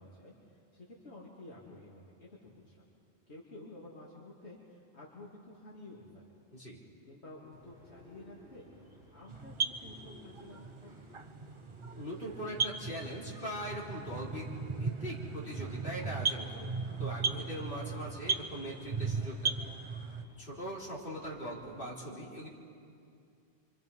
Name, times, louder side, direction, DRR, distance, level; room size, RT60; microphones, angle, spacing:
voice 1, 0.0-2.8 3.3-6.3 7.0-8.7 9.1-11.0, left 2 dB, 75° left, -5 dB, 3.0 m, -52 dB
voice 2, 6.5-6.8 12.0-14.5 14.8-16.7 17.0-19.7 20.4-22.5, equal, 55° left, -4 dB, 4.1 m, -41 dB
sound 1, 7.5-21.9, equal, 90° right, 7.0 m, -57 dB
sound 2, 9.3-20.2, right 5 dB, 30° right, 0.7 m, -37 dB
29.5 x 26.0 x 5.5 m, 2.5 s
omnidirectional pair, 1.1 m